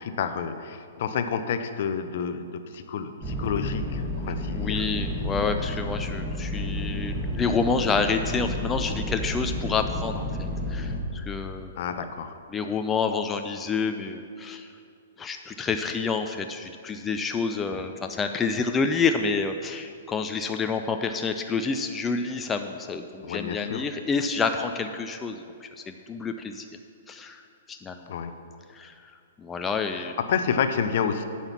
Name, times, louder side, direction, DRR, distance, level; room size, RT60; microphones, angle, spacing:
voice 1, 0.0-4.8 11.8-12.4 17.7-17.9 23.2-23.8 28.1-28.3 29.9-31.2, left 7 dB, 55° left, 9 dB, 0.6 m, -29 dB
sound 1, 3.2-11.0, left 1 dB, 5° right, 1.7 m, -31 dB
voice 2, 4.5-11.7 12.0-12.1 12.5-14.7 15.2-26.7 27.1-27.4 27.7-28.0 28.7-28.9 29.4-30.2, left 4 dB, 15° left, 6 dB, 0.4 m, -28 dB
8.8 x 5.8 x 7.2 m, 2.4 s
figure-of-eight pair, 115°, 0 cm